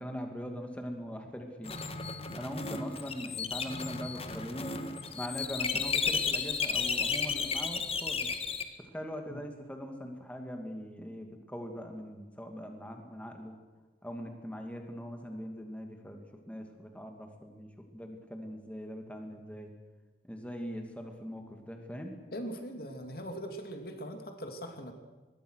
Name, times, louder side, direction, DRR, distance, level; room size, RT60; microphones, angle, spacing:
voice 1, 0.0-1.8 2.3-4.7 5.1-8.3 8.8-13.6 14.0-19.7 20.2-22.1, equal, 5° left, 3 dB, 2.5 m, -41 dB
sound 1, 1.7-8.6, left 5 dB, 30° left, 1.7 m, -33 dB
voice 2, 22.3-24.9, equal, 50° left, 5 dB, 2.6 m, -41 dB
24.0 x 21.0 x 6.5 m, 1.3 s
head